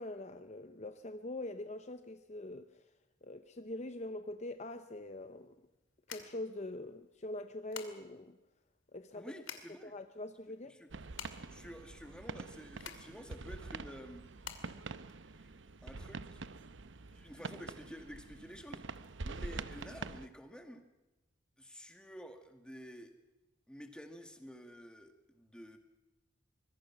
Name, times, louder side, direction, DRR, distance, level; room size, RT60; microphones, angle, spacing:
voice 1, 0.0-2.8 3.2-5.6 6.1-8.4 8.9-9.3 9.8-10.7, left 1 dB, 35° left, 0.8 m, -43 dB
sound 1, 4.7-15.8, left 7 dB, 85° left, 2.4 m, -52 dB
voice 2, 9.1-9.9 10.7-10.9 11.5-14.3 15.4-15.5 15.8-16.4 17.1-18.8 19.2-20.8 21.6-23.1 23.7-25.8, equal, 5° left, 2.0 m, -50 dB
sound 2, 10.9-20.3, right 3 dB, 70° right, 0.8 m, -46 dB
25.0 x 21.5 x 6.1 m
head